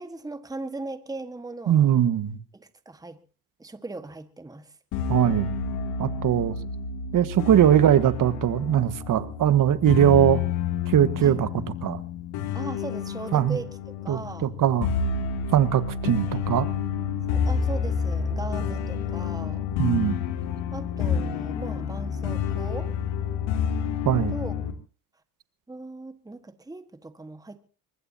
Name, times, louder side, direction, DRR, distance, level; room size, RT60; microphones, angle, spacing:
voice 1, 0.0-1.9 2.5-3.2 3.6-4.7 11.2-11.4 12.5-13.7 14.0-14.5 17.3-19.7 20.7-22.9 24.3-24.5 25.7-27.6, right 2 dB, 10° right, 10 dB, 1.5 m, -38 dB
voice 2, 1.7-2.4 5.1-5.5 6.0-6.6 7.1-10.4 10.9-11.5 11.8-12.0 13.3-13.6 14.1-14.9 15.5-16.7 19.8-20.2 24.0-24.3, right 10 dB, 45° right, 12 dB, 1.5 m, -21 dB
sound 1, 4.9-24.7, left 6 dB, 70° left, 2.9 m, -29 dB
24.5 x 20.0 x 2.8 m, 0.36 s
supercardioid pair, 85°, 45 cm